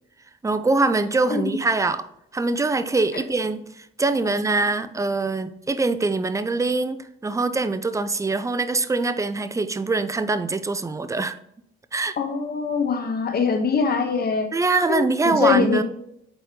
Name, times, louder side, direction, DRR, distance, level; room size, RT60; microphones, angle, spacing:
voice 1, 0.4-2.1 2.3-7.0 7.2-11.3 11.9-12.1 14.5-15.8, right 3 dB, 15° right, 0.5 m, -23 dB
voice 2, 12.2-14.5 14.9-15.8, left 5 dB, 50° left, 1.3 m, -23 dB
8.0 x 4.2 x 3.7 m
cardioid pair, 90°, 20 cm